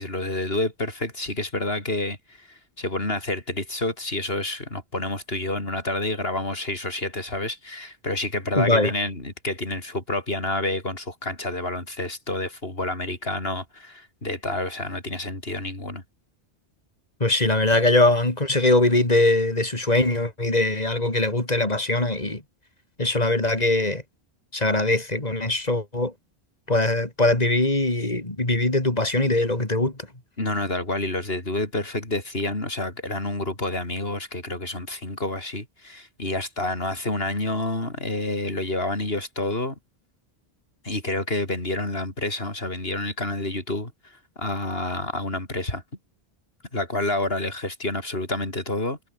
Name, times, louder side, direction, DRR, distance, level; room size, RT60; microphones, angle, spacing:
voice 1, 0.0-16.0 30.4-39.8 40.8-45.8 46.7-49.1, left 2 dB, 65° left, 5.4 m, -29 dB
voice 2, 8.5-8.9 17.2-22.4 23.0-24.0 24.5-26.1 26.7-30.0, left 2 dB, 40° left, 4.2 m, -21 dB
omnidirectional pair, 1.1 m